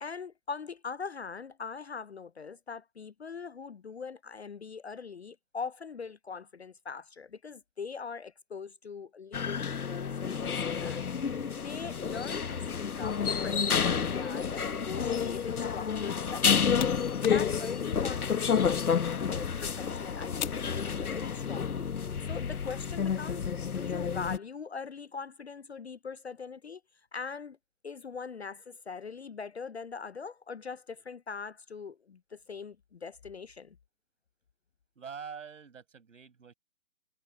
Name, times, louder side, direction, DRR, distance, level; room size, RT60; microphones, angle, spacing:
voice 1, 0.0-10.2 10.6-11.0 11.5-16.7 17.2-21.9 22.3-26.8 27.1-27.6 27.8-33.8, left 5 dB, 50° left, 0.5 m, -42 dB
sound 1, 9.3-24.4, left 6 dB, 75° left, 1.2 m, -30 dB
sound 2, 16.3-21.6, left 10 dB, 30° left, 2.0 m, -46 dB
voice 2, 35.0-36.5, right 6 dB, 55° right, 5.8 m, -45 dB
figure-of-eight pair, 155°, 44 cm